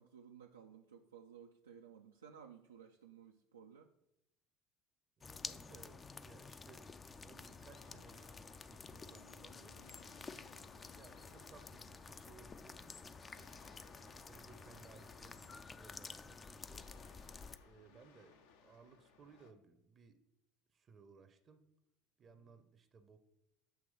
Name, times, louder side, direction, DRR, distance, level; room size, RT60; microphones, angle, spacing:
voice 1, 0.0-3.9 17.9-18.0, right 7 dB, 80° right, 3 dB, 0.3 m, -57 dB
sound 1, 5.2-17.6, left 4 dB, 25° left, 0.3 m, -51 dB
voice 2, 5.2-10.0 10.7-13.5 14.0-17.1 17.6-18.4 18.6-20.2 20.7-21.7 22.2-23.2, right 5 dB, 35° right, 10 dB, 0.6 m, -62 dB
sound 2, 7.6-19.5, left 6 dB, 70° left, 0.6 m, -66 dB
Bass guitar, 9.0-15.3, left 4 dB, 85° left, 1.9 m, -72 dB
7.8 x 2.9 x 5.3 m, 0.85 s
figure-of-eight pair, 65°, 0 cm